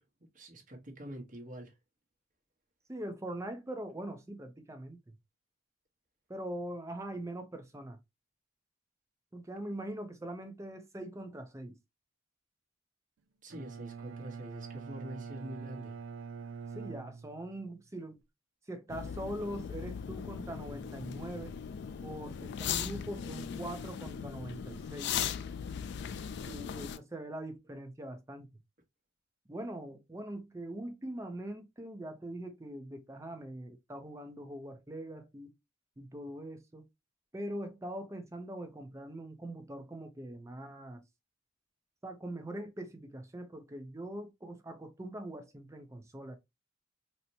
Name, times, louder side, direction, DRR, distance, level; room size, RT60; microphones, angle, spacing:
voice 1, 0.3-1.7 13.4-16.0, right 1 dB, 40° right, 1.0 m, -45 dB
voice 2, 2.9-5.1 6.3-8.0 9.3-11.8 16.7-18.2 18.7-21.6 22.0-25.1 26.5-28.5 29.5-35.5 36.0-36.9 37.3-41.0 42.0-46.4, right 1 dB, 15° right, 0.5 m, -42 dB
Bowed string instrument, 13.5-17.7, right 6 dB, 80° right, 0.4 m, -44 dB
sound 1, 18.9-27.0, left 8 dB, 60° left, 0.3 m, -38 dB
4.2 x 2.1 x 2.7 m
head